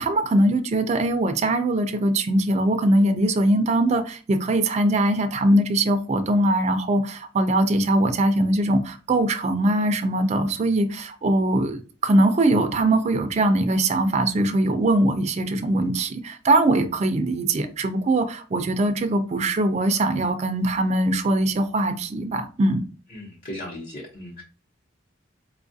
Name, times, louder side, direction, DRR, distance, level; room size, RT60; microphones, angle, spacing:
voice 1, 0.0-22.9, right 1 dB, 35° right, 0.4 m, -21 dB
voice 2, 23.1-24.4, left 1 dB, 50° left, 0.9 m, -37 dB
4.4 x 2.3 x 2.6 m
head